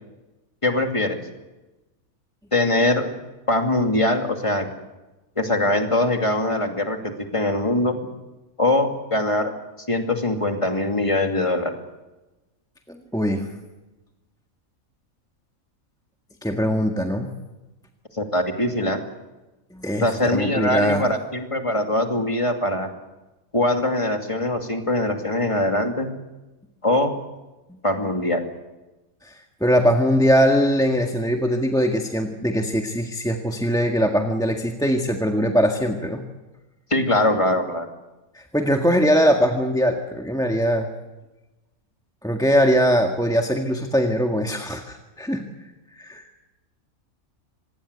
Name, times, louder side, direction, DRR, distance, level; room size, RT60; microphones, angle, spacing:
voice 1, 0.6-1.2 2.5-3.1 3.5-4.7 5.4-7.9 8.6-9.5 9.9-11.7 18.1-19.0 20.0-22.9 23.5-26.1 26.8-27.1 27.8-28.4 36.9-37.9, left 1 dB, 20° left, 4 dB, 2.6 m, -22 dB
voice 2, 12.9-13.5 16.4-17.3 19.7-21.1 27.7-27.8 29.2-36.2 38.4-40.9 42.2-45.4 45.9-46.4, equal, 5° left, 3 dB, 1.7 m, -21 dB
26.0 x 20.0 x 8.1 m, 1.1 s
omnidirectional pair, 1.5 m